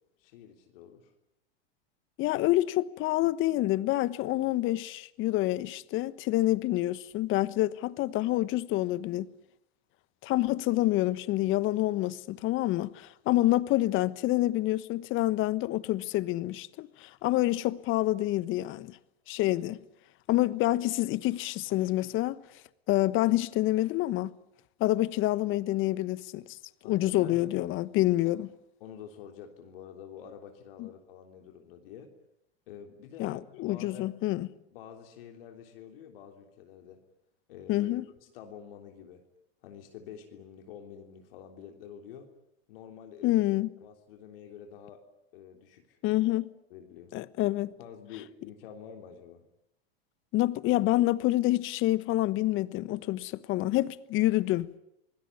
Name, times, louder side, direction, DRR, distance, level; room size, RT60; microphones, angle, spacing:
voice 1, 0.2-1.1 26.8-27.5 28.8-32.1 32.7-34.2 34.7-37.0 37.5-37.9 38.2-39.2 39.6-42.3 42.7-43.4 43.8-45.0 45.3-46.0 46.7-47.1 47.8-49.4, left 8 dB, 65° left, 3.5 m, -48 dB
voice 2, 2.2-9.3 10.2-19.0 19.3-19.8 20.3-22.4 22.9-24.3 24.8-26.6 26.9-28.5 30.8-30.9 33.2-34.5 37.7-38.0 43.2-43.7 46.0-46.5 47.1-47.7 50.3-54.7, left 16 dB, 40° left, 1.2 m, -27 dB
26.0 x 20.0 x 9.8 m
hypercardioid pair, 100°, 30 cm